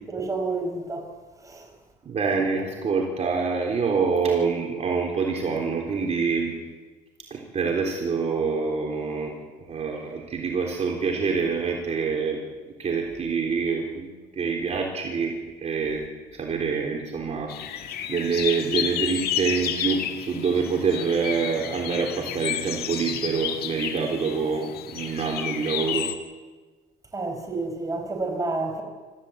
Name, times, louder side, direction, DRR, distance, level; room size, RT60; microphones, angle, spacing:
voice 1, 0.1-1.7 27.1-28.8, right 3 dB, 20° right, 4.8 m, -30 dB
voice 2, 2.1-6.5 7.3-9.3 9.7-12.4 12.8-14.1 14.4-15.3 15.6-16.0 16.3-17.5 17.8-26.1, right 5 dB, 40° right, 3.8 m, -26 dB
sound 1, 17.5-26.1, left 10 dB, 65° left, 1.9 m, -31 dB
26.5 x 14.5 x 8.2 m
cardioid pair, 110°, 17 cm